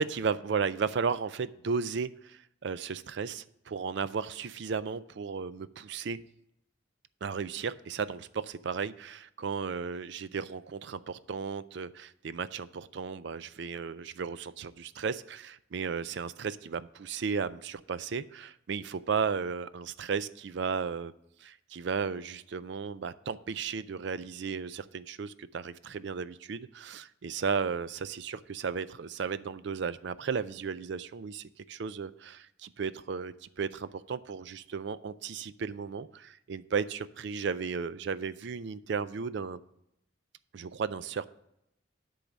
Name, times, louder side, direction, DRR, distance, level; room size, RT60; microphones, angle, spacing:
voice 1, 0.0-6.2 7.2-21.1 21.4-39.6 40.5-41.3, right 5 dB, 60° right, 15 dB, 0.4 m, -34 dB
10.0 x 3.9 x 7.3 m, 0.80 s
head